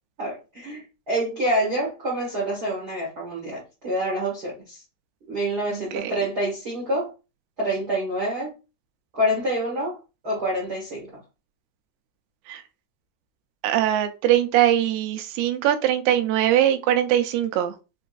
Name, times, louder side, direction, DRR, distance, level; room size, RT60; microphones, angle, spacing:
voice 1, 0.2-0.8 1.1-4.8 5.3-7.1 7.6-8.5 9.1-10.0 10.2-11.1, right 1 dB, 75° right, 0.9 m, -27 dB
voice 2, 13.6-17.7, right 12 dB, 90° right, 2.6 m, -21 dB
6.1 x 2.3 x 2.4 m
omnidirectional pair, 4.5 m